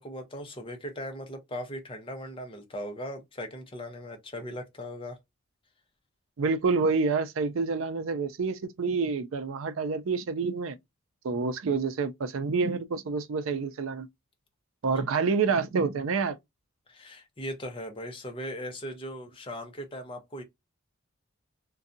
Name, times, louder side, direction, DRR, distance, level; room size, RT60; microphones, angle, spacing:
voice 1, 0.0-5.2 16.9-20.4, equal, 25° left, 0.7 m, -38 dB
voice 2, 6.4-10.8 11.2-14.1 14.8-16.4, right 4 dB, 70° right, 0.4 m, -28 dB
2.6 x 2.2 x 2.4 m
head